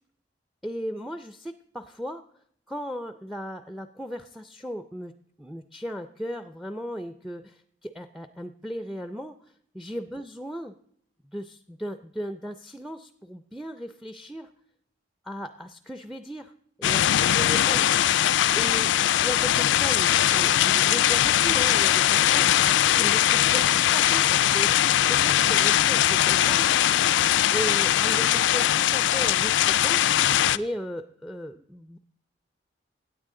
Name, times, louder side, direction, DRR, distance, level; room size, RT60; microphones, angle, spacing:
voice 1, 0.6-2.2 2.7-5.1 5.4-10.8 11.3-14.5 15.2-16.5 16.8-17.9 18.5-27.1 27.5-30.0 30.5-32.0, equal, ahead, 10 dB, 0.4 m, -36 dB
sound 1, 16.8-30.6, left 11 dB, 90° left, 0.3 m, -21 dB
16.5 x 9.2 x 3.7 m, 0.67 s
head